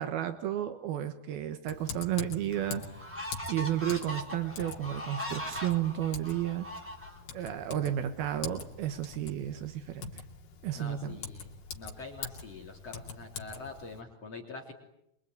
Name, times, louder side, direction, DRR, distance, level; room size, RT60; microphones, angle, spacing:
voice 1, 0.0-2.8 3.5-6.7 7.3-10.2 10.6-11.2, right 11 dB, 80° right, 8 dB, 3.2 m, -32 dB
Typing, 1.7-14.0, left 6 dB, 75° left, 4.6 m, -44 dB
sound 1, 1.8-1.9 2.5-7.5, equal, 5° right, 3.5 m, -40 dB
voice 2, 10.7-14.7, left 3 dB, 40° left, 1 dB, 4.1 m, -45 dB
26.5 x 23.0 x 9.4 m, 0.79 s
omnidirectional pair, 4.4 m